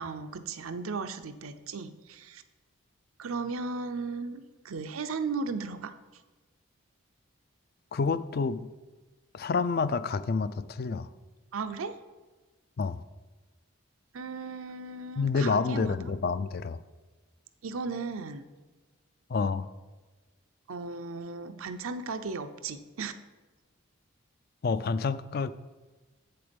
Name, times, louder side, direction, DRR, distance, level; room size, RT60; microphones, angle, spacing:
voice 1, 0.0-2.4 3.2-5.9 11.5-11.9 14.1-16.1 17.6-18.5 20.7-23.1, right 4 dB, 85° right, 9 dB, 0.6 m, -36 dB
voice 2, 7.9-8.7 9.3-11.1 12.8-13.0 15.2-16.8 19.3-19.7 24.6-25.5, left 4 dB, 45° left, 14 dB, 0.3 m, -28 dB
7.9 x 6.8 x 5.2 m, 1.2 s
head